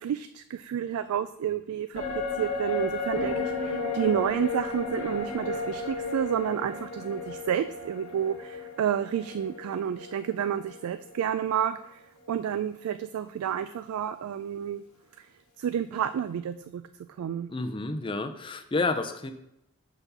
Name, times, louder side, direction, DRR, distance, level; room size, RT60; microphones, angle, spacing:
voice 1, 0.0-2.0 2.3-14.8 15.2-15.3 15.6-16.8 17.2-17.5, right 9 dB, 85° right, 12 dB, 0.3 m, -30 dB
sound 1, 1.9-11.5 11.8-11.9, left 3 dB, 85° left, 1.1 m, -34 dB
voice 2, 17.5-19.3, left 3 dB, 25° left, 8 dB, 0.5 m, -30 dB
5.8 x 4.1 x 5.5 m, 0.83 s
head